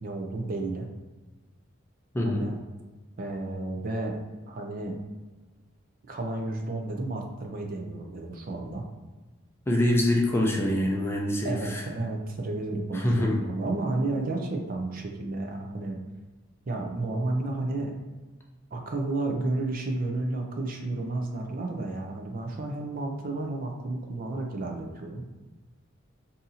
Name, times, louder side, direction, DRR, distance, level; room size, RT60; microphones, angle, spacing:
voice 1, 0.0-0.9 2.2-2.6 3.2-4.2 4.5-5.0 6.1-8.8 11.4-16.0 16.7-18.0 18.7-25.2, right 2 dB, 45° right, 2 dB, 0.5 m, -32 dB
voice 2, 2.1-2.5 9.7-11.8 12.9-13.4, left 1 dB, 10° left, -1 dB, 0.4 m, -25 dB
2.7 x 2.5 x 4.0 m, 1.2 s
head